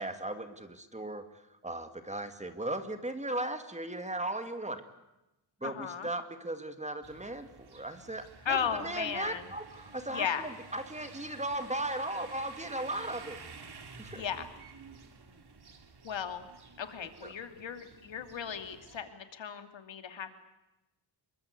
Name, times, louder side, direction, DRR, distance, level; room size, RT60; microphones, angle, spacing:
voice 1, 0.0-4.8 5.6-13.4 14.0-14.2 17.2-17.3, right 1 dB, 15° right, 8 dB, 2.1 m, -37 dB
voice 2, 5.6-6.1 8.4-9.4 10.1-10.5 14.1-14.5 16.0-16.5 16.8-20.3, left 7 dB, 70° left, 8 dB, 2.8 m, -36 dB
sound 1, 7.0-19.0, right 4 dB, 55° right, 3.5 m, -52 dB
27.0 x 23.5 x 8.3 m, 0.96 s
wide cardioid pair, 135°, 47 cm